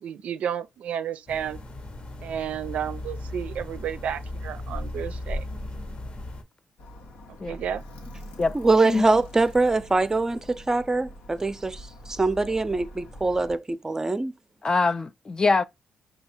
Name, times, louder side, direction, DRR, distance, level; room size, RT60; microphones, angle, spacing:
voice 1, 0.0-1.6 2.2-5.5 7.3-7.8, right 9 dB, 75° right, 0.4 m, -32 dB
sound 1, 1.3-6.4, left 1 dB, 45° left, 1.1 m, -36 dB
Alarm, 6.8-13.6, equal, 85° left, 1.1 m, -44 dB
voice 2, 8.5-10.4 10.7-14.3, right 3 dB, 20° right, 0.6 m, -23 dB
voice 3, 14.6-15.6, left 3 dB, 30° left, 0.4 m, -23 dB
5.2 x 2.3 x 4.4 m
supercardioid pair, 60°, 2 cm